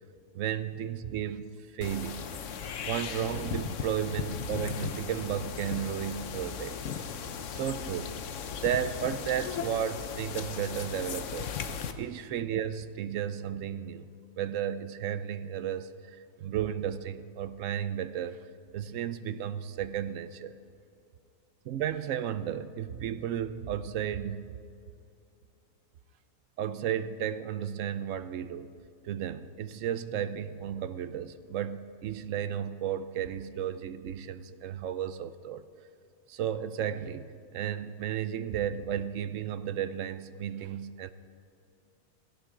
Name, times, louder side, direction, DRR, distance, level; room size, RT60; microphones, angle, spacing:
voice 1, 0.3-2.3 2.8-6.8 7.5-8.2 8.6-11.5 12.0-14.1 14.4-18.4 18.7-20.6 21.6-24.4 26.6-28.7 29.0-35.6 36.3-41.1, right 9 dB, 70° right, 13 dB, 0.8 m, -33 dB
sound 1, 1.8-11.9, left 7 dB, 60° left, 1.0 m, -37 dB
17.5 x 17.0 x 3.7 m, 2.6 s
omnidirectional pair, 1.6 m